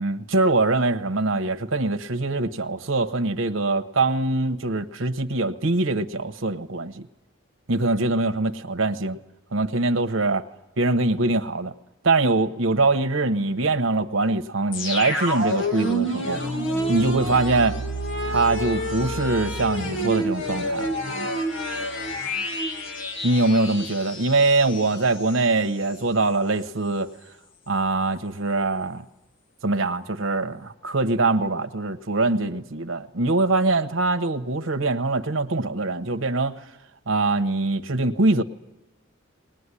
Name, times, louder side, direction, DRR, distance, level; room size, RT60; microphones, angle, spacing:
voice 1, 0.0-7.1 7.7-9.2 9.5-10.4 10.8-11.7 12.0-16.4 16.9-17.8 18.2-20.9 23.2-27.1 27.7-29.0 29.6-36.6 37.1-38.4, right 2 dB, 70° right, 8 dB, 1.1 m, -23 dB
sound 1, 14.7-25.5 25.8-25.9, equal, 65° left, 1.8 m, -28 dB
20.0 x 20.0 x 9.9 m, 0.91 s
head